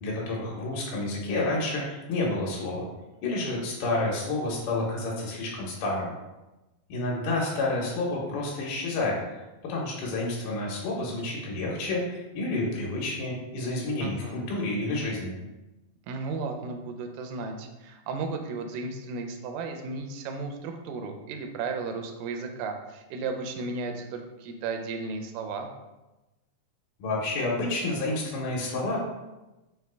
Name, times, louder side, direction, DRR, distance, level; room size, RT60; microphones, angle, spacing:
voice 1, 0.0-2.9 3.2-6.1 6.9-9.4 9.7-15.3 27.0-29.0, left 2 dB, 85° left, -3 dB, 2.5 m, -29 dB
voice 2, 14.0-14.4 16.1-25.7, right 4 dB, 85° right, 5 dB, 2.1 m, -34 dB
5.7 x 2.1 x 3.2 m, 1.0 s
omnidirectional pair, 3.7 m